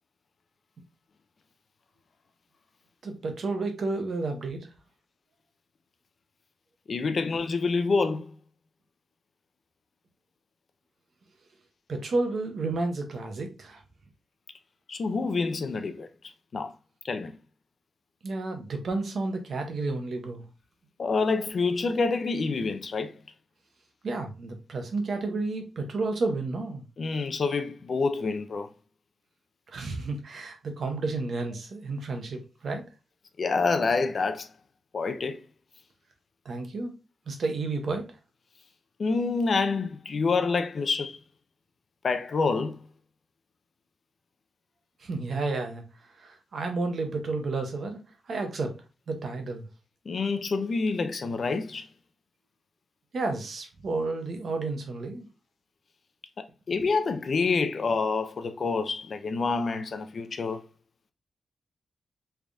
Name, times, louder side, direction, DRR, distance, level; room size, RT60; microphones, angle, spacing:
voice 1, 3.0-4.7 11.9-13.8 18.2-20.4 24.0-26.8 29.7-32.8 36.4-36.9 37.3-38.1 45.0-45.8 46.2-48.0 48.3-48.8 49.1-49.6 53.1-55.3, right 3 dB, 55° right, 0.9 m, -31 dB
voice 2, 6.9-8.3 14.9-16.1 16.5-16.7 17.0-17.4 21.0-23.1 27.0-28.7 33.4-34.5 34.9-35.4 39.0-41.2 42.0-42.8 50.1-51.9 56.4-60.6, left 4 dB, 45° left, 0.4 m, -27 dB
3.5 x 3.3 x 2.5 m
wide cardioid pair, 160°, 0 cm